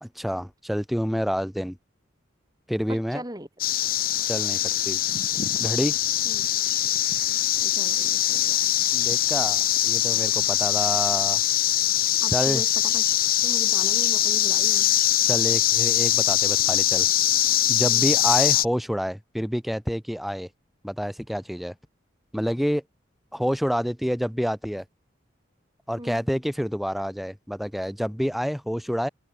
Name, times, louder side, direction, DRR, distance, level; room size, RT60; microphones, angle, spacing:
voice 1, 0.0-1.8 2.7-3.2 4.3-5.0 5.6-5.9 8.9-11.4 12.3-12.6 15.3-17.1 17.7-20.5 20.8-21.7 22.3-22.8 23.3-24.8 25.9-29.1, equal, ahead, 1.6 m, -28 dB
voice 2, 2.9-3.5 6.3-6.5 7.6-8.7 12.2-13.0 13.4-14.9 17.8-18.1 26.0-26.2, right 1 dB, 20° right, 2.7 m, -39 dB
sound 1, 3.6-18.6, left 12 dB, 50° left, 1.5 m, -22 dB
head